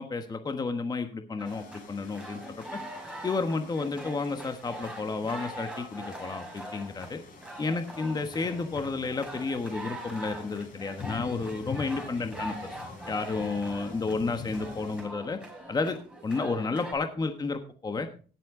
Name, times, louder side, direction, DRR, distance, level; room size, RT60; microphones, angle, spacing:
voice 1, 0.0-2.8 3.2-7.2 7.6-12.8 13.1-15.4 15.7-18.1, left 3 dB, 25° left, 7 dB, 1.2 m, -31 dB
sound 1, 1.4-15.0, left 6 dB, 55° left, 4.2 m, -46 dB
sound 2, 1.4-16.9, right 1 dB, 5° right, 5.1 m, -43 dB
18.0 x 7.6 x 3.7 m, 0.38 s
cardioid pair, 110°, 17 cm